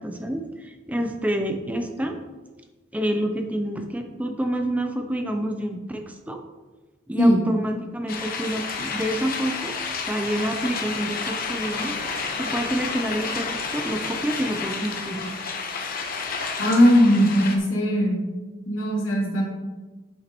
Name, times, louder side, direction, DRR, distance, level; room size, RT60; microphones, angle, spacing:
voice 1, 0.0-2.2 2.9-6.4 7.1-9.7 10.0-11.9 12.4-15.6, right 1 dB, 10° right, 4 dB, 0.6 m, -28 dB
sound 1, 8.1-17.6, left 5 dB, 45° left, 1.0 m, -30 dB
voice 2, 16.6-18.2 18.6-19.4, equal, 85° left, -4 dB, 2.9 m, -19 dB
10.5 x 7.3 x 3.0 m, 1.2 s
head